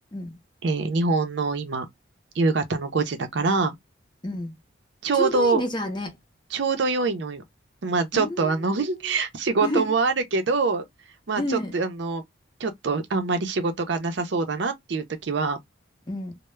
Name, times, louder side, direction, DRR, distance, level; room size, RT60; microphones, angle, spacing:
voice 1, 0.6-1.9 2.4-3.7 5.0-5.6 6.5-7.4 7.8-10.8 11.3-12.2 12.6-15.6, right 4 dB, 65° right, 0.5 m, -24 dB
voice 2, 4.2-4.5 5.1-6.2 8.1-9.1 9.6-9.9 11.4-11.7 16.1-16.4, left 1 dB, 25° left, 0.6 m, -30 dB
2.2 x 2.0 x 3.0 m
head